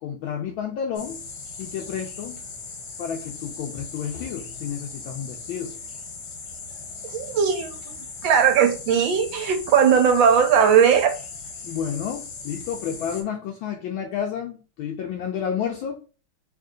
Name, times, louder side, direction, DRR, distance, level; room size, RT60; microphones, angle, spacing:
voice 1, 0.0-1.2 1.6-2.4 3.0-5.7 11.6-16.0, left 8 dB, 75° left, 2 dB, 1.3 m, -30 dB
sound 1, 0.9-13.2, left 4 dB, 60° left, 1.2 m, -38 dB
voice 2, 7.1-7.9 8.2-11.1, right 7 dB, 70° right, 6 dB, 1.4 m, -18 dB
3.7 x 2.7 x 3.7 m, 0.35 s
omnidirectional pair, 2.4 m